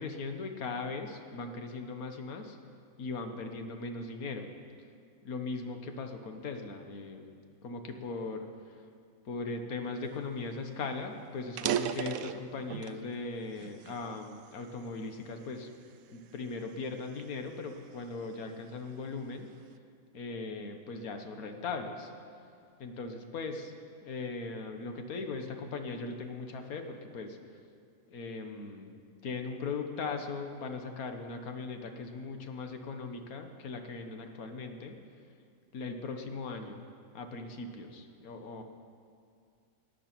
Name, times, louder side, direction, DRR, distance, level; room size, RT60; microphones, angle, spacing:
voice 1, 0.0-2.6 3.0-4.5 5.2-7.3 7.6-8.5 9.2-15.7 16.1-19.5 20.1-22.1 22.8-23.7 24.0-27.4 28.1-28.9 29.2-35.0 35.7-36.8 37.1-38.6, left 3 dB, 80° left, 5 dB, 1.6 m, -39 dB
sound 1, 10.4-10.5 10.8-10.9 11.4-13.0 13.6-14.9 15.4-15.7 16.3-18.4, right 10 dB, 75° right, 1.0 m, -36 dB
18.0 x 9.9 x 6.0 m, 2.3 s
omnidirectional pair, 1.5 m